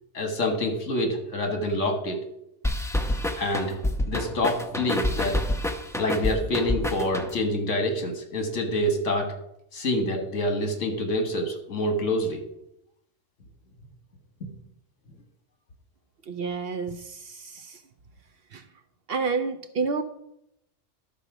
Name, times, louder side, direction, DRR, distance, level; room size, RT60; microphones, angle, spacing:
voice 1, 0.1-2.2 3.4-3.8 4.1-5.4 6.0-9.3 9.7-12.4, left 1 dB, 70° left, 4 dB, 1.8 m, -26 dB
sound 1, 2.6-7.6, left 1 dB, 5° left, 0.5 m, -28 dB
voice 2, 16.3-17.8 18.5-18.6 19.1-20.0, right 4 dB, 60° right, 8 dB, 0.8 m, -29 dB
12.0 x 4.2 x 5.9 m, 0.81 s
omnidirectional pair, 1.3 m